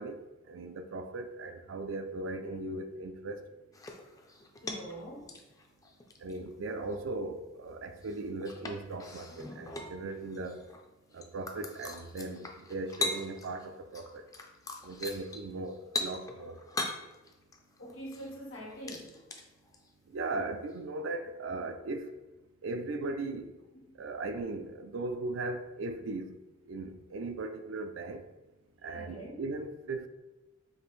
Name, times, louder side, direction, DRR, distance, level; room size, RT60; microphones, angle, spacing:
voice 1, 0.0-3.4 6.2-10.6 11.1-14.2 14.8-16.6 20.1-22.1 22.6-23.5 24.0-26.3 26.7-28.2 28.8-30.1, right 2 dB, 75° right, 0.4 m, -38 dB
sound 1, 3.7-5.0 5.3-6.5 6.9-7.0 8.0-10.8 11.1-13.7 13.9-19.9 20.7-20.8, left 3 dB, 20° left, 0.3 m, -40 dB
voice 2, 4.6-5.3 17.8-19.1 23.8-24.0 28.9-29.4, equal, 90° left, 1.4 m, -44 dB
5.1 x 2.5 x 3.1 m
head